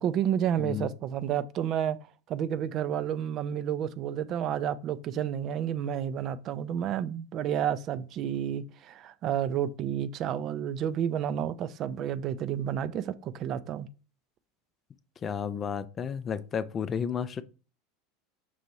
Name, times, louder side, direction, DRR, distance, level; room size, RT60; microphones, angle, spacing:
voice 1, 0.0-2.0 2.3-13.9, right 9 dB, 45° right, 0.4 m, -30 dB
voice 2, 0.6-0.9 15.2-17.4, left 7 dB, 30° left, 0.3 m, -32 dB
5.4 x 2.5 x 3.0 m
hypercardioid pair, 80°, 0 cm